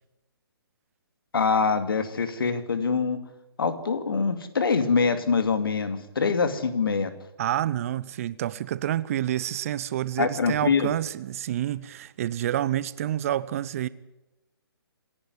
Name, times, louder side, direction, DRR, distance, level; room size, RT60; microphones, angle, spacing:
voice 1, 1.3-3.2 3.6-7.1 10.2-10.9, left 5 dB, 60° left, 2.6 m, -24 dB
voice 2, 7.4-13.9, right 12 dB, 35° right, 0.7 m, -28 dB
26.0 x 11.0 x 9.6 m
figure-of-eight pair, 135°, 13 cm